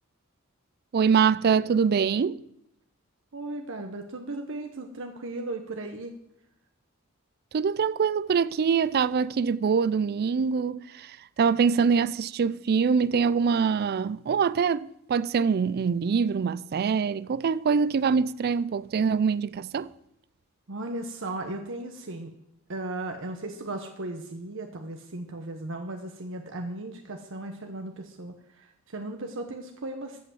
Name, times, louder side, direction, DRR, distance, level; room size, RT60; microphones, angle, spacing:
voice 1, 0.9-2.4 7.5-19.9, right 6 dB, 50° right, 0.4 m, -24 dB
voice 2, 3.3-6.1 20.7-22.3 22.7-30.2, right 2 dB, 65° right, 1.0 m, -36 dB
14.0 x 5.8 x 7.7 m
head